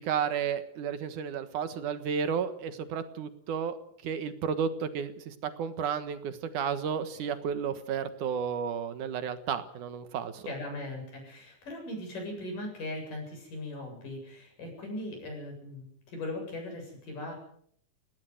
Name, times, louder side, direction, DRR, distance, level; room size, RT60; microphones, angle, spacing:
voice 1, 0.0-3.8 4.0-10.5, right 7 dB, 75° right, 11 dB, 2.9 m, -32 dB
voice 2, 10.4-17.4, left 1 dB, 80° left, 2 dB, 9.4 m, -39 dB
21.0 x 18.0 x 8.0 m, 0.65 s
omnidirectional pair, 3.7 m